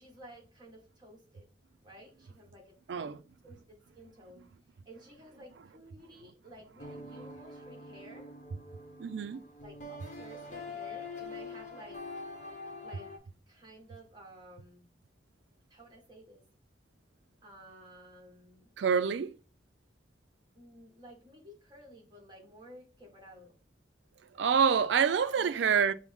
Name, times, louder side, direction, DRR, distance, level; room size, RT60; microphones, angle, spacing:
voice 1, 0.0-1.5 1.8-3.2 3.4-4.4 4.8-8.3 9.6-12.0 12.8-13.1 13.5-14.9 15.7-16.4 17.4-18.8 20.5-23.6 25.3-25.6, right 1 dB, 25° right, 1.3 m, -53 dB
sound 1, 6.8-13.2, left 3 dB, 40° left, 0.8 m, -44 dB
voice 2, 9.0-9.4 18.8-19.4 24.3-25.9, right 6 dB, 85° right, 0.4 m, -27 dB
6.1 x 2.1 x 3.5 m
head